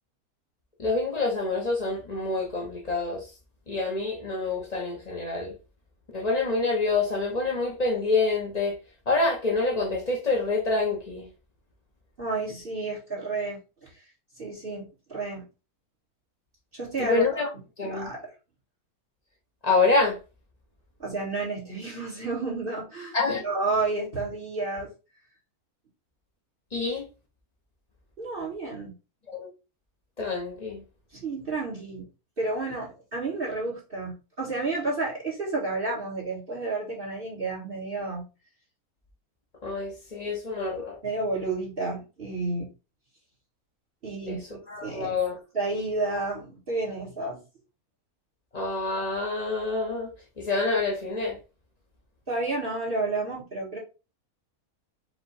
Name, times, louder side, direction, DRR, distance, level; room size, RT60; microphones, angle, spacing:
voice 1, 0.8-3.2 3.7-5.5 6.1-8.8 9.1-11.3 17.0-17.5 17.8-18.1 19.6-20.2 23.1-23.4 26.7-27.0 29.3-29.5 30.2-30.8 39.6-41.0 44.3-44.4 44.7-45.4 48.5-50.1 50.4-51.4, left 3 dB, 35° left, 0.8 m, -26 dB
voice 2, 12.2-14.0 14.4-15.4 16.7-17.4 17.8-18.2 21.0-24.9 28.2-28.9 31.1-32.1 32.4-38.3 41.0-42.7 44.0-44.4 44.8-45.2 45.5-47.4 52.3-53.8, right 3 dB, 40° right, 1.5 m, -31 dB
4.9 x 2.2 x 4.1 m
omnidirectional pair, 1.6 m